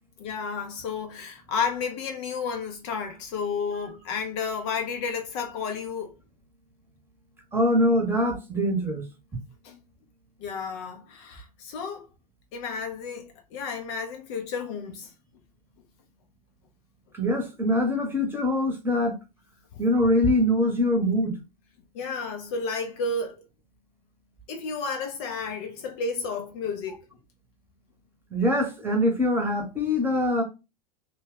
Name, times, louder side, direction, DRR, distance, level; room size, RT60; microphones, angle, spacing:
voice 1, 0.2-6.1 9.6-9.8 10.4-12.1 12.5-15.1 21.9-23.5 24.5-27.0, left 5 dB, 45° left, 0.6 m, -32 dB
voice 2, 7.5-9.1 17.1-19.2 19.8-21.3 28.3-30.4, left 1 dB, 10° right, 1.0 m, -23 dB
2.9 x 2.3 x 3.6 m
figure-of-eight pair, 85°, 21 cm